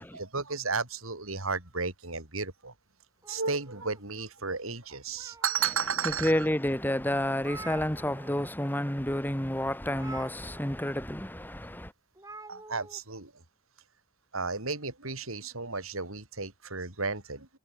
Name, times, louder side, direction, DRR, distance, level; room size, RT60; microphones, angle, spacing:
voice 1, 0.0-2.7 3.3-6.3 12.5-13.3 14.3-17.5, right 5 dB, 90° right, 5.8 m, -33 dB
sound 1, 3.2-4.4 4.9-5.8 6.4-6.5 6.9-7.0 7.1-8.5 8.8-9.0 9.9-10.9 12.1-13.0, right 2 dB, 15° right, 5.3 m, -47 dB
voice 2, 6.0-11.9, left 1 dB, 10° left, 4.2 m, -30 dB
head